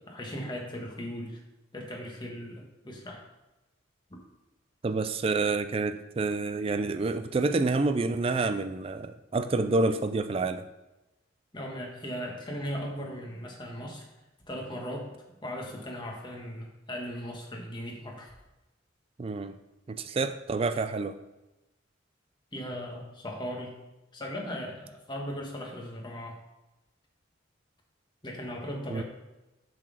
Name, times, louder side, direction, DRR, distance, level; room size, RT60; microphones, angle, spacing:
voice 1, 0.1-1.4 1.7-3.2 4.1-4.2 11.5-14.1 14.5-15.1 15.4-18.3 22.5-23.8 24.1-26.4 28.2-29.0, equal, 25° left, 0 dB, 1.4 m, -38 dB
voice 2, 4.8-10.7 19.2-19.5 19.9-21.2 28.9-29.0, right 3 dB, 30° right, 10 dB, 0.3 m, -28 dB
7.3 x 4.1 x 6.3 m, 1.0 s
head